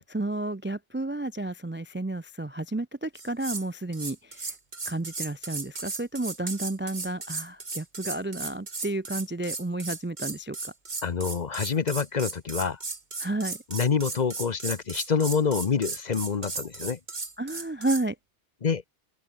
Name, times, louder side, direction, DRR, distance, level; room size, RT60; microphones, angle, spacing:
voice 1, 0.0-4.5 4.9-10.7 13.2-13.6 17.4-18.2, right 2 dB, 20° right, 0.3 m, -31 dB
sound 1, 3.1-3.7 3.9-18.0, right 3 dB, 40° right, 1.9 m, -36 dB
voice 2, 11.0-12.8 13.7-17.0 18.6-18.8, left 6 dB, 40° left, 0.8 m, -27 dB
open air
omnidirectional pair, 1.2 m